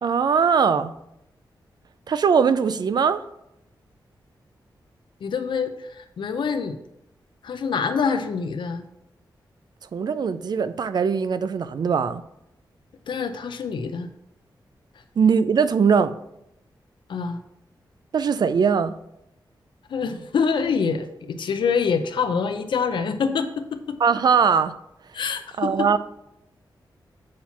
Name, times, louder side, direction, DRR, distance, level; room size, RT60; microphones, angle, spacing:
voice 1, 0.0-0.9 2.1-3.2 9.9-12.2 15.2-16.2 18.1-18.9 24.0-24.8 25.6-26.0, right 6 dB, 60° right, 0.4 m, -20 dB
voice 2, 5.2-6.8 7.4-8.8 13.1-14.1 17.1-17.4 19.9-24.0 25.1-26.0, left 5 dB, 80° left, 0.6 m, -26 dB
7.3 x 4.3 x 5.8 m
wide cardioid pair, 130°, 8 cm